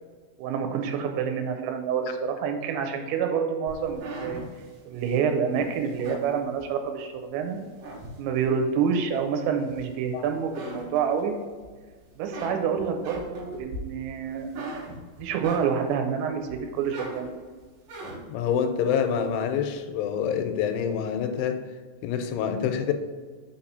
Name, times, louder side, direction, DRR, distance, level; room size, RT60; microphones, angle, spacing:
voice 1, 0.4-4.4 4.9-7.6 8.2-11.3 12.2-14.6 15.2-17.3, right 6 dB, 80° right, 5 dB, 2.9 m, -27 dB
sound 1, 3.7-7.1 7.5-8.6 9.1-10.1 10.4-11.7 12.0-16.0 16.5-18.4, right 1 dB, 65° right, 2.2 m, -40 dB
voice 2, 18.3-21.7 22.0-22.9, left 7 dB, 90° left, 8 dB, 3.0 m, -26 dB
6.5 x 2.9 x 5.4 m, 1.5 s
omnidirectional pair, 5.2 m